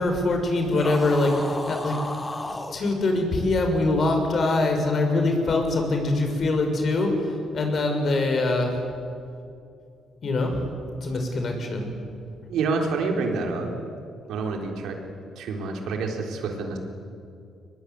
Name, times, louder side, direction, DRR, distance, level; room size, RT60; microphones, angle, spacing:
voice 1, 0.0-2.0 2.7-8.8 10.2-10.5 11.0-11.9, left 2 dB, 50° left, 4 dB, 6.1 m, -23 dB
sound 1, 0.7-2.8, left 2 dB, 15° left, 2.9 m, -33 dB
voice 2, 12.5-13.7 14.3-15.0 15.4-16.8, right 4 dB, 80° right, 2 dB, 4.0 m, -27 dB
23.5 x 21.0 x 9.8 m, 2.4 s
cardioid pair, 90°, 0 cm